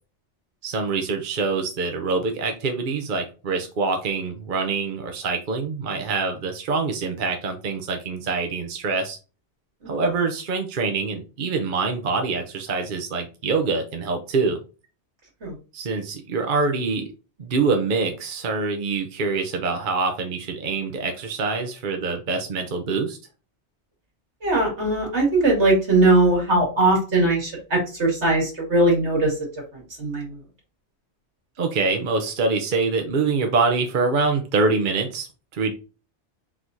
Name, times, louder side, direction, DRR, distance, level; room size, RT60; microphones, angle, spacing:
voice 1, 0.6-9.2 9.9-14.6 15.7-17.0 17.4-23.2 31.6-35.3 35.5-35.7, right 4 dB, 50° right, 4 dB, 0.9 m, -25 dB
voice 2, 24.4-29.3 30.0-30.3, right 2 dB, 80° right, -1 dB, 2.4 m, -20 dB
4.5 x 4.1 x 2.7 m, 0.33 s
omnidirectional pair, 1.1 m